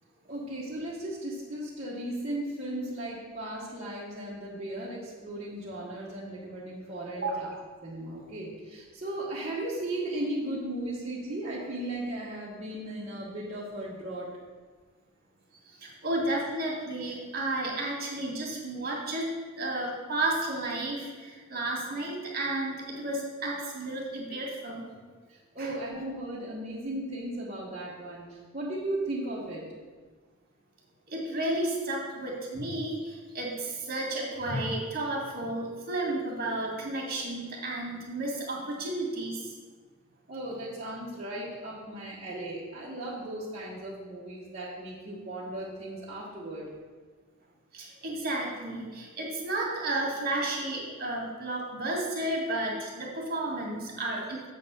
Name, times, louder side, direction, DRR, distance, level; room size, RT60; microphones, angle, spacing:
voice 1, 0.2-7.5 7.8-14.3 25.3-28.2 28.5-29.6 40.3-46.7, right 1 dB, 30° right, -8 dB, 1.3 m, -36 dB
voice 2, 15.8-24.8 25.6-25.7 31.1-39.5 47.7-54.5, right 2 dB, 50° right, -1 dB, 1.8 m, -32 dB
7.2 x 4.1 x 6.7 m, 1.4 s
head